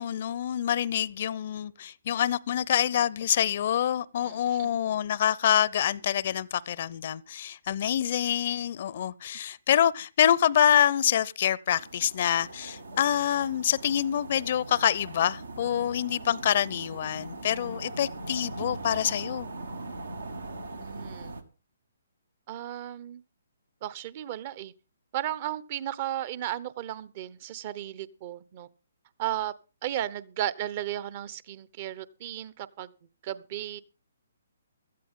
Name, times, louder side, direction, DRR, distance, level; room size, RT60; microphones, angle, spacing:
voice 1, 0.0-19.5, left 10 dB, 50° left, 0.6 m, -26 dB
voice 2, 4.2-4.7 20.8-21.4 22.5-23.2 23.8-24.7 25.1-28.7 29.2-29.5 29.8-32.9 33.2-33.8, right 12 dB, 40° right, 0.9 m, -34 dB
sound 1, 11.8-21.4, right 2 dB, 80° right, 1.8 m, -40 dB
16.5 x 13.5 x 3.7 m
figure-of-eight pair, 135°, 0 cm